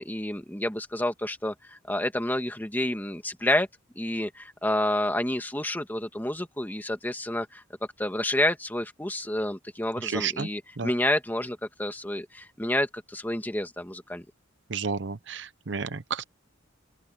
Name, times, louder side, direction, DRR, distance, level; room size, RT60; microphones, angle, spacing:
voice 1, 0.0-3.7 4.0-7.6 8.0-14.3, left 1 dB, 10° left, 1.7 m, -29 dB
voice 2, 10.0-10.5 10.8-10.9 14.7-16.2, right 5 dB, 70° right, 0.8 m, -31 dB
open air
head